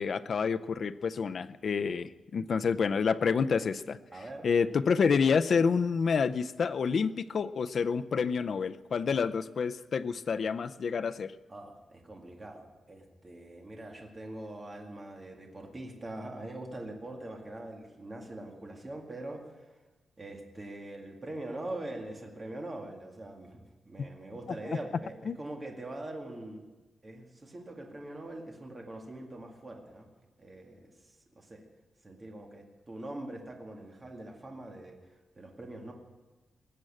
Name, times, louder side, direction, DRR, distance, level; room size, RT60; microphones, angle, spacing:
voice 1, 0.0-4.0 4.4-11.3 25.3-25.4, left 5 dB, 50° left, 11 dB, 0.5 m, -28 dB
voice 2, 4.1-4.5 11.5-19.7 20.2-26.6 27.0-30.1 30.4-31.6 32.0-35.0 35.3-35.9, right 1 dB, 25° right, 1 dB, 2.1 m, -43 dB
20.0 x 7.9 x 8.7 m, 1.2 s
wide cardioid pair, 160°, 0 cm